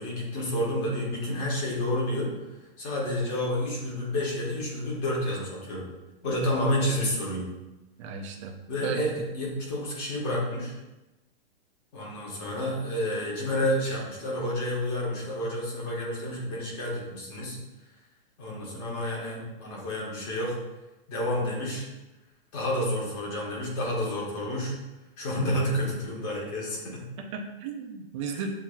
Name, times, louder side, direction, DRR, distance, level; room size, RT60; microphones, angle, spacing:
voice 1, 0.0-2.3 2.8-5.9 6.2-7.5 8.7-10.7 11.9-17.6 18.4-20.5 21.1-21.9 22.5-24.7 25.2-27.0 28.3-28.4, left 1 dB, 30° left, -3 dB, 1.3 m, -30 dB
voice 2, 8.0-8.6 8.8-9.0 27.2-28.5, right 6 dB, 30° right, 2 dB, 0.5 m, -35 dB
7.1 x 2.7 x 2.3 m, 1.0 s
hypercardioid pair, 155°, 31 cm